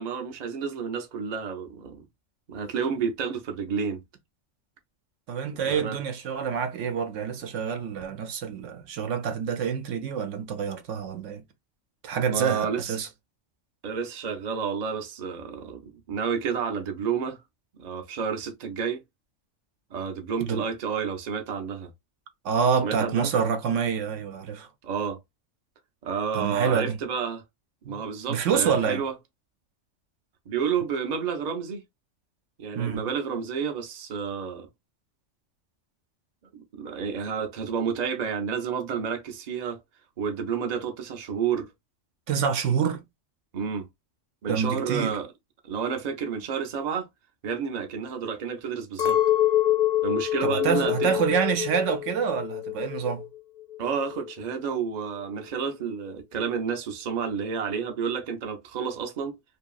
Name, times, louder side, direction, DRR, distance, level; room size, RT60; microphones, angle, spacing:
voice 1, 0.0-2.0 2.5-4.0 5.6-6.0 12.2-13.0 13.8-17.4 17.8-19.0 19.9-21.9 22.8-23.3 24.8-25.2 26.0-27.4 27.9-29.1 30.5-31.8 32.6-34.7 36.5-39.8 40.2-41.7 43.5-43.9 44.4-45.3 45.6-47.1 47.4-49.2 50.0-51.1 53.8-59.3, right 6 dB, 45° right, 0.6 m, -30 dB
voice 2, 5.3-11.4 12.0-13.1 20.4-20.6 22.4-24.7 26.3-27.0 27.8-28.0 28.3-29.0 32.7-33.1 42.3-43.0 44.5-45.2 50.4-53.2, right 7 dB, 80° right, 0.9 m, -27 dB
Chink clink, 49.0-53.4 53.6-54.4, left 13 dB, 55° left, 0.5 m, -26 dB
2.8 x 2.6 x 2.3 m
omnidirectional pair, 1.3 m